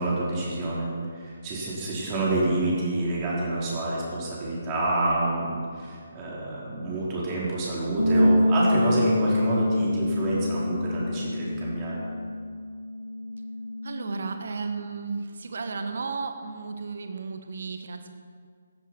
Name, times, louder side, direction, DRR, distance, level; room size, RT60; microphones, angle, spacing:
voice 1, 0.0-12.0, right 2 dB, 25° right, -6 dB, 4.5 m, -28 dB
sound 1, 8.0-14.2, left 1 dB, 80° left, 4.4 m, -25 dB
voice 2, 13.8-18.1, right 4 dB, 55° right, 6 dB, 1.4 m, -34 dB
15.5 x 13.5 x 4.6 m, 2.1 s
figure-of-eight pair, 140°, 0 cm